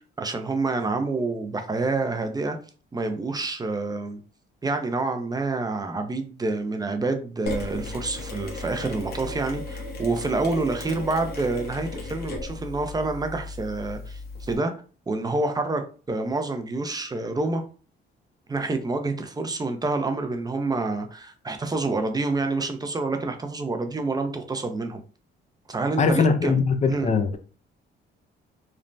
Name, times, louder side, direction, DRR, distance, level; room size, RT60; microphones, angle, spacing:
voice 1, 0.2-2.6 2.9-4.2 4.6-14.7 15.1-15.8 16.1-17.6 18.5-25.0 25.7-26.5 26.9-27.1, right 3 dB, 20° right, 0.5 m, -27 dB
Mechanisms, 7.5-14.6, left 2 dB, 50° left, 0.9 m, -36 dB
voice 2, 26.0-27.4, left 5 dB, 35° left, 0.5 m, -21 dB
3.2 x 2.0 x 2.5 m
cardioid pair, 90°, 20 cm